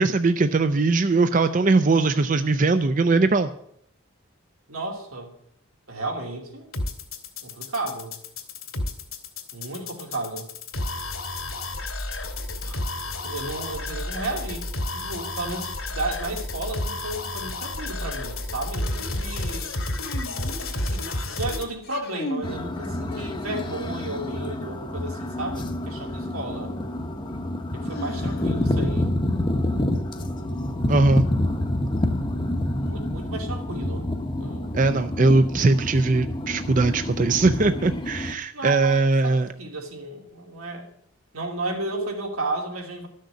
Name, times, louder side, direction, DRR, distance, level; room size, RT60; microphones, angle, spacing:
voice 1, 0.0-3.5 30.9-31.3 34.7-39.5, right 3 dB, 35° right, 10 dB, 0.4 m, -20 dB
voice 2, 4.7-5.3 5.9-6.7 7.4-8.2 9.5-10.5 12.6-12.8 13.1-19.7 20.8-26.7 27.7-29.1 32.8-34.1 34.4-34.7 38.5-40.8 41.3-43.1, right 2 dB, 85° right, 1 dB, 2.8 m, -33 dB
sound 1, 6.7-21.6, left 2 dB, 75° left, 2.4 m, -31 dB
sound 2, 20.0-21.2 21.7-22.6 23.1-24.0 26.0-26.1 27.9-28.7, left 1 dB, 45° left, 1.1 m, -37 dB
sound 3, 22.4-38.3, left 1 dB, 20° left, 0.8 m, -28 dB
13.0 x 6.5 x 8.2 m, 0.71 s
head